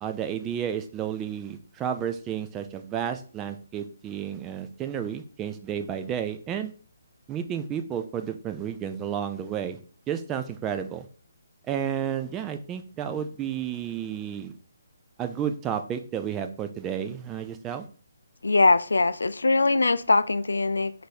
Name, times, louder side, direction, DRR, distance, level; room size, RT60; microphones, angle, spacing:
voice 1, 0.0-6.7 7.3-9.8 10.1-11.1 11.7-14.5 15.2-17.9, right 9 dB, 15° right, 0.4 m, -31 dB
voice 2, 18.4-20.9, left 3 dB, 80° left, 0.3 m, -21 dB
4.6 x 2.7 x 4.2 m
figure-of-eight pair, 145°, 0 cm